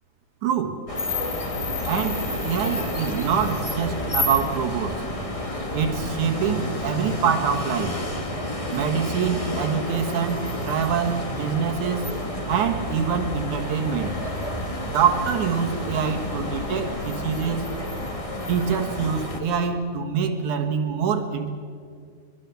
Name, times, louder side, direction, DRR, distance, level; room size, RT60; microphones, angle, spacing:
voice 1, 0.4-0.8 1.8-5.1 5.7-8.0 8.7-12.1 12.5-14.1 14.9-17.6 18.5-21.5, right 7 dB, 70° right, 5 dB, 2.8 m, -25 dB
sound 1, 0.9-19.4, left 1 dB, 15° left, 1.1 m, -30 dB
23.5 x 22.5 x 6.9 m, 2.2 s
omnidirectional pair, 3.7 m